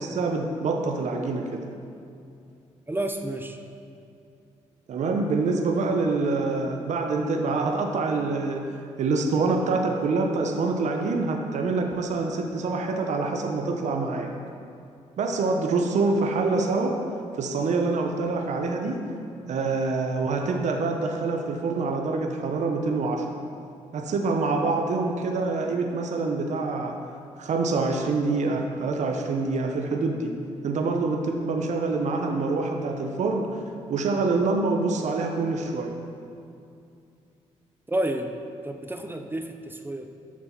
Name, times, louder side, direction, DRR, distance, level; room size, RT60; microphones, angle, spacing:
voice 1, 0.0-1.6 4.9-8.6 9.0-14.3 15.2-17.0 17.4-19.0 19.5-23.2 23.9-27.0 27.4-30.3 30.6-33.5 33.9-35.9, right 3 dB, 65° right, 3 dB, 1.0 m, -26 dB
voice 2, 2.9-3.6 37.9-38.3 38.6-40.1, right 1 dB, 15° right, 6 dB, 0.7 m, -30 dB
7.4 x 6.2 x 5.8 m, 2.5 s
supercardioid pair, 55°, 13 cm